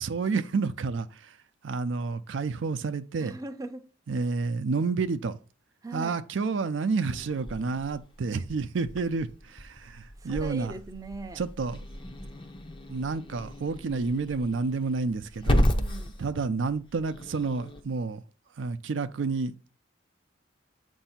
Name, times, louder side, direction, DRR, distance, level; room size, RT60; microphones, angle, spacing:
voice 1, 0.0-1.3 1.6-3.4 4.1-5.4 5.9-10.7 11.4-11.8 12.9-15.6 16.2-18.2 18.6-19.5, right 4 dB, 70° right, 0.4 m, -30 dB
voice 2, 3.2-3.8 5.8-6.2 10.2-11.4 15.4-16.1, right 2 dB, 20° right, 0.5 m, -40 dB
Growling / Hiss, 7.1-17.8, equal, 25° left, 0.7 m, -33 dB
7.8 x 2.7 x 5.7 m
head